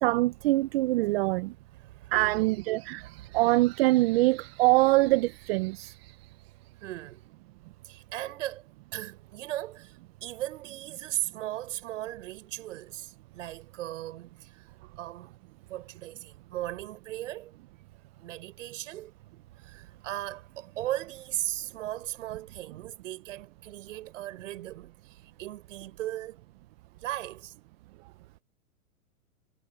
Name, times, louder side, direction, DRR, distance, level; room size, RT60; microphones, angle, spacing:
voice 1, 0.0-1.5 2.1-5.9, right 20 dB, 45° right, 1.1 m, -24 dB
voice 2, 1.7-2.6 6.8-7.3 7.8-8.6 8.9-9.9 10.2-14.7 15.0-15.3 15.7-17.6 18.2-19.1 19.6-26.4 27.0-27.5, right 14 dB, 60° right, 7.5 m, -37 dB
hypercardioid pair, 130°, 42 cm